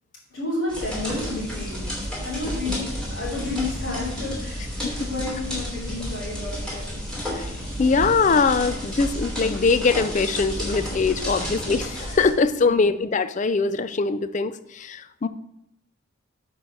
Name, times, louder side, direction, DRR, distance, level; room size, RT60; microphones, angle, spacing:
voice 1, 0.3-1.8 2.2-7.0 11.3-11.6 12.6-12.9, left 2 dB, 60° left, -6 dB, 3.6 m, -31 dB
sound 1, 0.7-12.3, equal, 5° left, 2.8 m, -31 dB
voice 2, 7.8-15.3, left 4 dB, 35° left, 12 dB, 0.4 m, -22 dB
7.6 x 4.7 x 6.2 m, 0.79 s
head